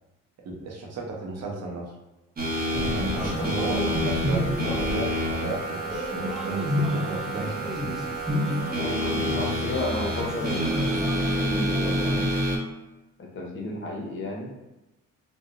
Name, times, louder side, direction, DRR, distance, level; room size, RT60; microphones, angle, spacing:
voice 1, 0.4-1.9 3.0-8.0, right 2 dB, 60° right, 0 dB, 0.7 m, -35 dB
sound 1, 2.4-12.6, equal, 30° right, 0.7 m, -28 dB
sound 2, 2.7-12.3, left 1 dB, ahead, 0.3 m, -31 dB
voice 2, 8.8-12.3 13.3-14.5, left 1 dB, 45° left, -2 dB, 0.8 m, -33 dB
2.7 x 2.0 x 2.5 m, 1.0 s
cardioid pair, 90°, 30 cm